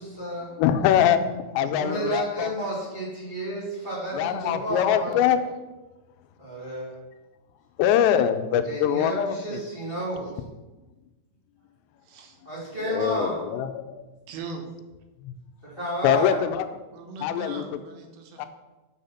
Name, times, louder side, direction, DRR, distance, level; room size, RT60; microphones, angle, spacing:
voice 1, 0.0-0.5 1.7-5.2 6.4-6.9 8.6-10.3 12.4-13.4 15.8-16.4, right 1 dB, 30° right, -7 dB, 1.1 m, -31 dB
voice 2, 0.6-2.5 4.1-5.4 7.8-9.6 12.8-14.0 15.2-15.3 16.0-16.7 17.2-17.6 18.4-18.5, left 9 dB, 90° left, 10 dB, 2.8 m, -23 dB
voice 3, 12.0-12.4 14.3-14.6 16.9-18.5, right 4 dB, 75° right, 4 dB, 2.8 m, -40 dB
6.8 x 6.4 x 5.6 m, 1.1 s
omnidirectional pair, 4.9 m